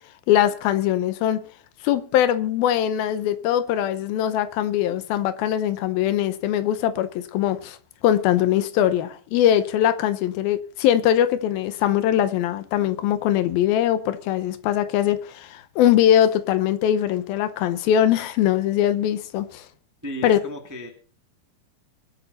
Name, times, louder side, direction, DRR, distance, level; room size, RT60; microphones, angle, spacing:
voice 1, 0.3-1.4 1.8-7.8 8.0-19.6 20.2-20.4, left 11 dB, 80° left, 2.6 m, -21 dB
voice 2, 20.0-20.9, equal, 10° right, 1.1 m, -34 dB
24.0 x 8.6 x 4.1 m
omnidirectional pair, 4.3 m